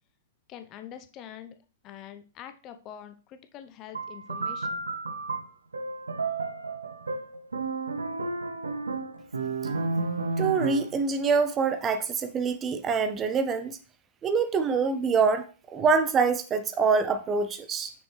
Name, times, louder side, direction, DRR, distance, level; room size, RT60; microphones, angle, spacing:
voice 1, 0.5-1.5 1.8-4.8, left 10 dB, 35° left, 9 dB, 0.7 m, -45 dB
sound 1, 3.9-11.0, right 3 dB, 80° right, 0.6 m, -32 dB
voice 2, 10.4-13.8 14.2-15.4 15.7-17.9, right 5 dB, 25° right, 9 dB, 0.6 m, -25 dB
6.3 x 5.9 x 3.2 m, 0.36 s
figure-of-eight pair, 105°, 0 cm